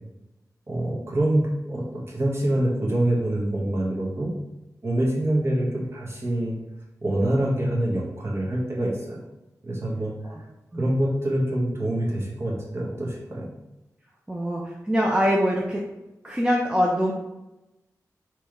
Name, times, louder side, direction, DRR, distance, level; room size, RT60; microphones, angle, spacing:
voice 1, 0.7-4.3 4.8-6.5 7.0-9.2 9.6-10.1 10.8-13.4, right 1 dB, 45° right, -4 dB, 1.4 m, -25 dB
voice 2, 14.3-15.8 16.2-17.1, equal, 15° right, -2 dB, 0.6 m, -24 dB
5.1 x 3.3 x 3.1 m, 0.95 s
wide cardioid pair, 95°, 6 cm